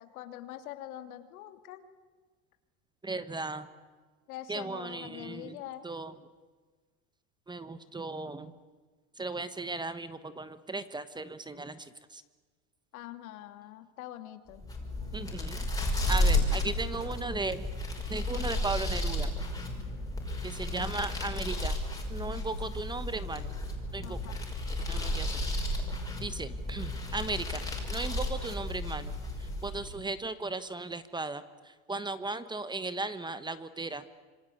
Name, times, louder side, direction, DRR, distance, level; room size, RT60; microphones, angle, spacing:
voice 1, 0.0-1.8 4.3-5.9 12.9-14.6 24.0-24.5, left 13 dB, 85° left, 8 dB, 2.8 m, -44 dB
voice 2, 3.0-3.7 4.5-5.6 5.8-6.2 7.5-8.5 9.2-12.2 15.1-15.6 16.1-17.6 18.1-19.3 20.4-21.8 22.1-23.6 23.9-24.2 24.9-25.4 26.2-27.6 27.9-34.0, right 3 dB, 10° right, 13 dB, 1.2 m, -36 dB
sound 1, 14.5-30.0, left 1 dB, 10° left, 5.5 m, -33 dB
26.5 x 24.5 x 8.6 m, 1.4 s
supercardioid pair, 135°, 42 cm